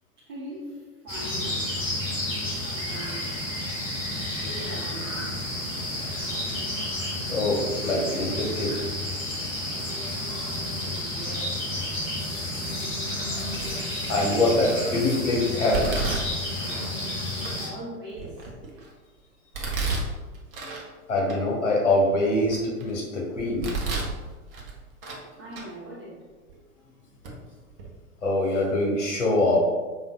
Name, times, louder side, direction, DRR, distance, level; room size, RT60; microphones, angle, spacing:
voice 1, 0.2-1.7 2.5-3.6 4.4-5.4 10.7-11.6 17.6-18.4 25.4-26.2, right 1 dB, 20° right, -7 dB, 0.4 m, -41 dB
sound 1, 1.1-17.7, left 1 dB, 15° left, 0.9 m, -31 dB
voice 2, 7.3-8.8 10.3-10.6 13.3-13.5 14.1-16.1 16.7-16.8 21.1-23.7 28.2-29.6, left 2 dB, 55° left, -2 dB, 1.2 m, -24 dB
Domestic sounds home sounds, 13.6-14.0 14.5-15.0 15.7-16.9 17.4-17.5 18.1-18.9 19.5-20.9 21.3-21.4 21.9-22.9 23.4-24.2 24.5-25.2 25.5-25.7 26.5-26.6 27.2-27.3 27.7-27.9, right 3 dB, 40° right, 0.8 m, -32 dB
5.1 x 2.6 x 2.3 m, 1.3 s
figure-of-eight pair, 110°, 43 cm